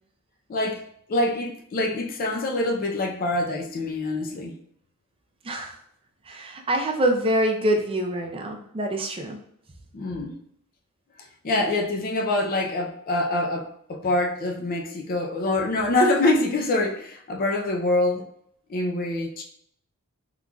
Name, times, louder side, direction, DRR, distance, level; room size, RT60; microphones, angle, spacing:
voice 1, 0.5-0.8 1.1-4.5 9.9-10.3 11.4-18.2 18.7-19.4, left 2 dB, 40° left, 0 dB, 0.4 m, -25 dB
voice 2, 5.4-5.8 6.3-9.4, right 1 dB, 25° right, 2 dB, 0.5 m, -25 dB
3.8 x 3.0 x 2.3 m, 0.68 s
head